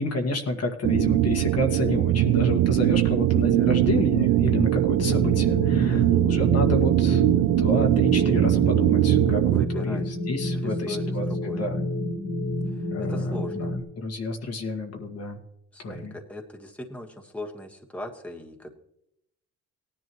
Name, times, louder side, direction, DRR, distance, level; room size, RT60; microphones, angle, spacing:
voice 1, 0.0-9.4 9.7-11.8 12.9-13.2 13.5-15.4 15.8-16.2, left 2 dB, 55° left, 3 dB, 1.9 m, -30 dB
sound 1, 0.8-9.7, right 13 dB, 75° right, 0.6 m, -21 dB
sound 2, 5.0-13.8, left 1 dB, 70° left, 3.4 m, -29 dB
voice 2, 5.9-6.2 9.4-10.0 10.5-11.6 12.7-13.7 15.7-18.7, left 1 dB, 5° left, 1 dB, 1.5 m, -39 dB
17.5 x 10.5 x 3.1 m, 0.78 s
cardioid pair, 90°, 30 cm